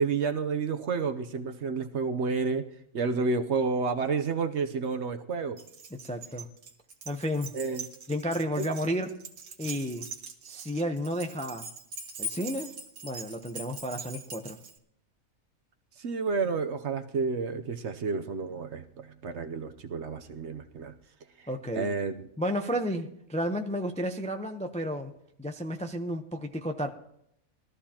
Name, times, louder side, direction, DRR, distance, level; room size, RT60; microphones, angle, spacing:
voice 1, 0.0-2.6 2.9-5.6 7.5-7.8 8.6-8.7 16.0-20.9 21.4-21.5 21.7-22.3, right 4 dB, 60° right, 7 dB, 0.9 m, -30 dB
Keys jangling, 5.6-14.8, right 2 dB, 80° right, 1.7 m, -42 dB
voice 2, 5.9-6.5 7.1-7.5 8.1-9.2 9.6-10.1 10.4-11.7 12.2-12.7 13.0-14.6 21.5-21.9 22.4-25.1 25.4-26.9, equal, 10° left, 5 dB, 0.4 m, -32 dB
20.5 x 13.5 x 2.9 m, 0.74 s
omnidirectional pair, 1.5 m